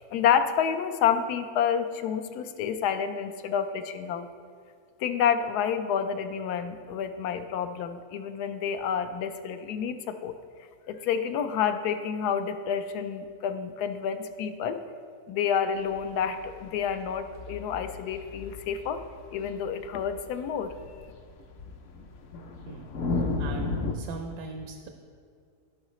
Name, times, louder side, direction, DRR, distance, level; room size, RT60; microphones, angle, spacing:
voice 1, 0.0-4.3 5.0-10.3 10.9-14.8 15.3-19.0 19.3-20.7, left 7 dB, 80° left, 9 dB, 1.1 m, -29 dB
sound 1, 15.9-23.9, left 3 dB, 60° left, 0.9 m, -35 dB
voice 2, 23.4-24.9, right 3 dB, 75° right, 4 dB, 1.1 m, -40 dB
15.0 x 5.6 x 3.1 m, 2.2 s
omnidirectional pair, 1.7 m